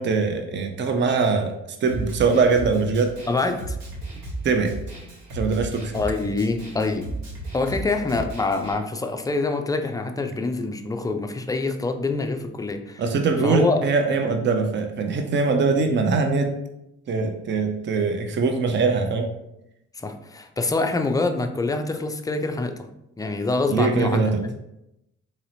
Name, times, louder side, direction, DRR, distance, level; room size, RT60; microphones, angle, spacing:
voice 1, 0.0-1.5 1.8-3.2 4.4-4.8 5.3-5.9 13.0-16.5 17.1-19.3 23.7-24.4, right 4 dB, 40° right, 5 dB, 0.6 m, -22 dB
Snare drum, 1.9-8.7, right 2 dB, 80° right, 1.4 m, -35 dB
voice 2, 3.3-3.8 5.9-7.1 7.5-13.0 13.4-13.8 19.9-22.9 23.2-24.5, left 3 dB, 10° left, 6 dB, 0.3 m, -25 dB
4.1 x 2.9 x 2.7 m, 0.85 s
supercardioid pair, 80°, 30 cm